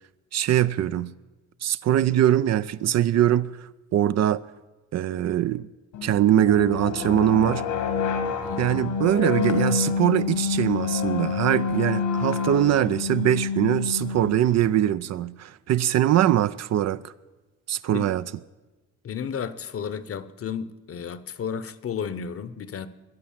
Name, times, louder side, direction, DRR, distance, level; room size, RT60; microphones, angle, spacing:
voice 1, 0.3-1.1 1.6-4.4 4.9-5.7 6.0-7.7 8.6-17.1 17.7-18.3, right 11 dB, 60° right, 0.5 m, -22 dB
sound 1, 5.9-14.7, left 5 dB, 85° left, 2.2 m, -28 dB
voice 2, 8.4-8.8 17.9-18.1 19.0-22.9, left 7 dB, 50° left, 0.9 m, -33 dB
21.5 x 7.7 x 7.4 m
cardioid pair, 90°, 30 cm